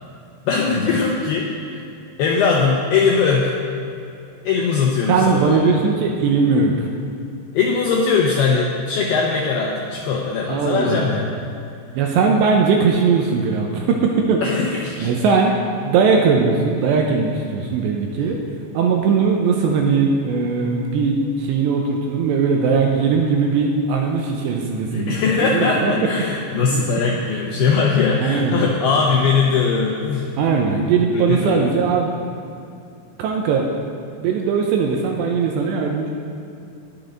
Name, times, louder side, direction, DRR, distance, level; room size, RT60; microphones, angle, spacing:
voice 1, 0.5-1.8 2.2-3.5 4.5-5.8 7.5-11.3 14.4-15.2 24.9-30.3 31.1-31.7, left 5 dB, 80° left, -2 dB, 2.3 m, -20 dB
voice 2, 5.1-6.9 10.5-11.2 12.0-14.4 15.0-15.6 15.8-18.4 18.7-26.0 26.7-26.8 28.2-28.6 30.4-32.2 33.2-33.7 34.2-36.1, right 5 dB, 80° right, 1 dB, 2.7 m, -19 dB
20.5 x 7.0 x 3.9 m, 2.7 s
omnidirectional pair, 5.6 m